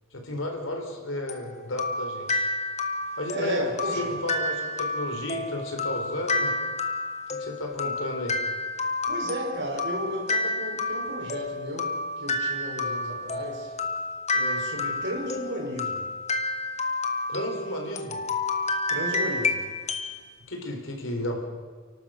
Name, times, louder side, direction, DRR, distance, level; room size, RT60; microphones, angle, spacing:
voice 1, 0.1-2.5 3.2-3.6 3.9-6.5 7.3-8.4 17.3-18.3 20.5-21.4, left 1 dB, 65° left, 3 dB, 3.9 m, -33 dB
sound 1, 1.3-20.2, left 2 dB, 30° left, 1.3 m, -30 dB
voice 2, 3.3-4.1 9.1-13.7 14.3-16.0 18.9-19.7, equal, 55° right, -1 dB, 5.4 m, -33 dB
29.0 x 12.0 x 7.6 m, 1.5 s
head